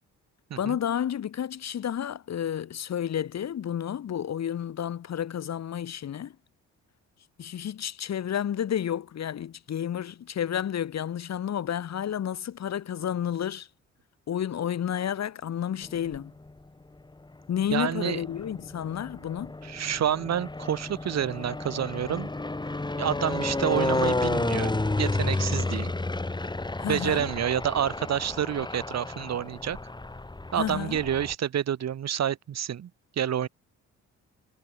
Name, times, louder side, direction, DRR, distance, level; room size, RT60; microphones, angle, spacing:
voice 1, 0.6-6.3 7.4-13.7 14.3-16.3 17.5-19.5 26.8-27.3 30.6-31.0, left 9 dB, 60° left, 4.2 m, -31 dB
sound 1, 15.8-16.6 17.3-31.3, left 2 dB, 15° left, 3.1 m, -31 dB
voice 2, 17.7-18.2 19.6-22.3 23.0-25.9 26.9-29.8 30.5-32.9 33.2-33.5, right 9 dB, 60° right, 2.8 m, -28 dB
cardioid pair, 90°, 30 cm